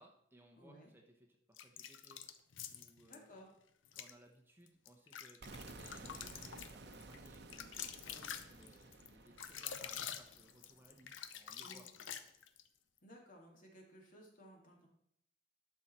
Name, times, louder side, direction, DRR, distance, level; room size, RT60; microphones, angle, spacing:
voice 1, 0.0-2.3 2.7-3.5 3.9-11.9, right 1 dB, 10° right, 2 dB, 1.0 m, -64 dB
voice 2, 0.6-0.9 3.1-3.5 11.6-11.9 13.0-14.9, equal, 45° left, 0 dB, 2.4 m, -58 dB
sound 1, 1.5-3.2 3.8-4.1 4.7-12.7, left 9 dB, 90° left, 0.7 m, -47 dB
sound 2, 5.4-11.3, right 3 dB, 60° right, 0.9 m, -55 dB
11.5 x 6.5 x 4.3 m, 0.73 s
head